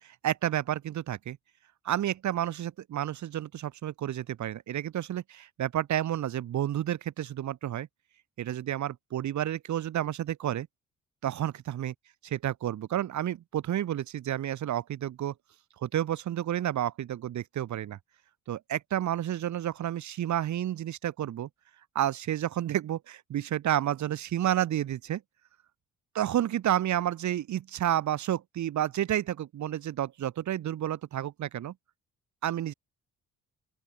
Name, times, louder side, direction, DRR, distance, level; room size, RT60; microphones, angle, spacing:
voice 1, 0.0-1.4 1.8-7.9 8.4-10.7 11.2-11.9 12.4-15.3 15.8-18.0 18.5-21.5 21.9-25.2 26.1-31.7 32.4-32.7, right 11 dB, 70° right, 2.6 m, -30 dB
open air
cardioid pair, 90°, 30 cm